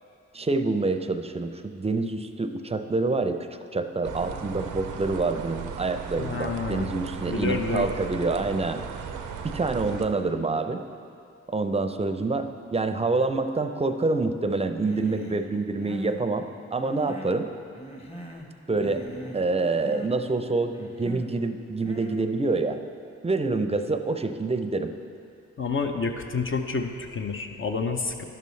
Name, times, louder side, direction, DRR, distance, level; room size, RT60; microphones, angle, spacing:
voice 1, 0.3-3.4 3.7-8.8 9.4-10.8 11.5-12.5 12.7-17.5 18.7-19.0 19.3-22.8 23.2-24.9, right 3 dB, 20° right, 8 dB, 0.5 m, -27 dB
sound 1, 4.0-10.1, right 6 dB, 85° right, 0.5 m, -36 dB
voice 2, 6.2-7.0 7.3-7.9 25.6-28.2, left 4 dB, 45° left, 4 dB, 0.6 m, -29 dB
Human voice, 14.8-15.5 15.8-16.2 16.7-17.5 17.7-18.5 18.7-19.5 19.8-20.1 20.7-21.3 21.8-22.3, right 1 dB, 20° left, 1.1 m, -41 dB
10.5 x 6.7 x 3.2 m, 2.5 s
supercardioid pair, 45°, 30 cm